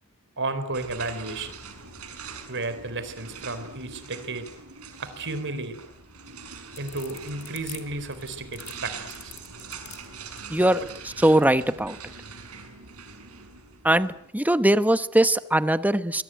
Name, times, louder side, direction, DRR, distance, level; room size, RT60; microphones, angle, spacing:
voice 1, 0.4-1.5 2.5-4.5 5.0-5.8 6.8-9.3, right 2 dB, 55° right, 11 dB, 4.1 m, -33 dB
sound 1, 0.7-14.3, right 5 dB, 85° right, 6.2 m, -43 dB
sound 2, 6.4-11.5, left 14 dB, 75° left, 3.4 m, -45 dB
voice 2, 10.5-12.0 13.8-16.2, right 1 dB, 5° right, 12 dB, 1.1 m, -21 dB
25.5 x 22.5 x 9.2 m, 0.74 s
head